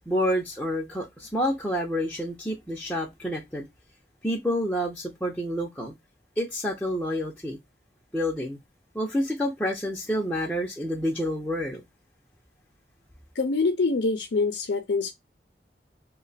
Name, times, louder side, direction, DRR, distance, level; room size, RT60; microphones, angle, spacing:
voice 1, 0.1-3.7 4.2-5.9 6.4-7.6 8.1-8.6 8.9-11.8, equal, 5° left, 0.6 m, -28 dB
voice 2, 13.4-15.1, left 3 dB, 80° left, 0.5 m, -25 dB
3.2 x 2.2 x 3.9 m
head